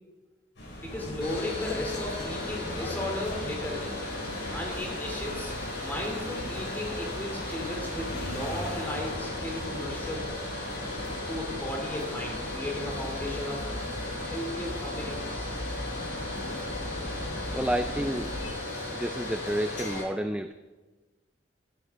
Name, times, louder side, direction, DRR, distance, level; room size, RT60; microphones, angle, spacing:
sound 1, 0.6-20.0, left 1 dB, 85° left, 4.6 m, -42 dB
voice 1, 0.8-4.0 4.5-5.5 5.8-10.3 11.3-13.7 14.2-15.6, left 1 dB, 10° left, -1 dB, 3.0 m, -35 dB
sound 2, 0.9-18.5, left 1 dB, 30° left, 0.9 m, -40 dB
Domestic sounds home sounds, 1.2-20.0, left 2 dB, 60° left, 4.5 m, -37 dB
voice 2, 17.5-18.5 18.9-20.5, right 1 dB, 5° right, 9 dB, 0.3 m, -30 dB
15.5 x 10.0 x 3.7 m, 1.2 s
head